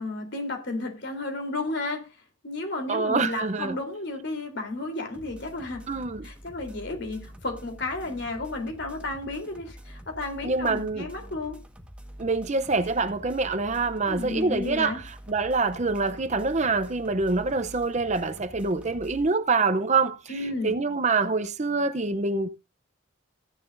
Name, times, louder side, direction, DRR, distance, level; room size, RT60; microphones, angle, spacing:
voice 1, 0.0-2.1 2.4-5.9 6.2-11.6 14.1-15.0 20.3-20.7, left 2 dB, 55° left, 3.5 m, -33 dB
voice 2, 2.9-3.8 5.9-6.3 10.4-11.1 12.2-20.3 20.6-22.5, right 3 dB, 35° right, 0.6 m, -25 dB
sound 1, 5.1-19.3, equal, 5° right, 1.4 m, -46 dB
15.5 x 11.0 x 2.6 m
head